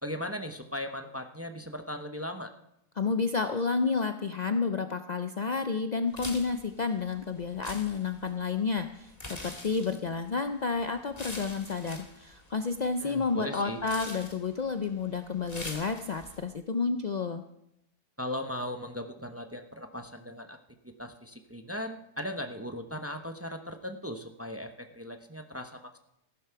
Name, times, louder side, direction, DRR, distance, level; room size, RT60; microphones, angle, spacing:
voice 1, 0.0-2.5 13.0-13.8 18.2-20.6 21.0-26.0, left 1 dB, 15° right, 6 dB, 0.5 m, -38 dB
voice 2, 3.0-17.4, left 4 dB, 80° left, 8 dB, 0.3 m, -30 dB
sound 1, 6.1-16.4, left 2 dB, 25° left, 2.0 m, -45 dB
15.0 x 11.5 x 4.6 m, 0.82 s
omnidirectional pair, 1.5 m